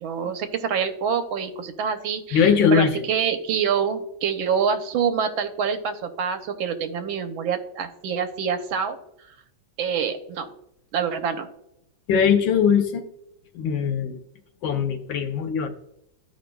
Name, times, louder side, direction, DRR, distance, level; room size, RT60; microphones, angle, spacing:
voice 1, 0.0-9.0 9.8-10.5 10.9-11.5, right 7 dB, 85° right, 8 dB, 1.6 m, -26 dB
voice 2, 2.3-2.9 12.1-13.0 13.5-14.2 14.6-15.7, left 7 dB, 75° left, 7 dB, 1.5 m, -20 dB
13.5 x 5.1 x 2.3 m, 0.79 s
omnidirectional pair, 2.2 m